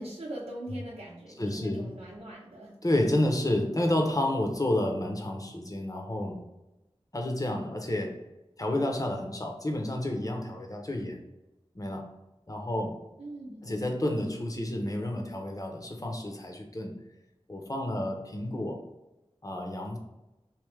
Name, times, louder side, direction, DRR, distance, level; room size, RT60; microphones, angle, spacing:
voice 1, 0.0-2.8 13.2-14.0, right 1 dB, 80° right, -7 dB, 0.7 m, -41 dB
voice 2, 1.4-1.9 2.8-6.4 7.1-8.1 8.6-11.2 11.7-12.1 12.5-12.9 13.6-17.0 17.5-18.8 19.4-20.0, left 1 dB, 35° left, 2 dB, 0.8 m, -30 dB
3.2 x 2.8 x 3.4 m, 0.97 s
wide cardioid pair, 45°, 11 cm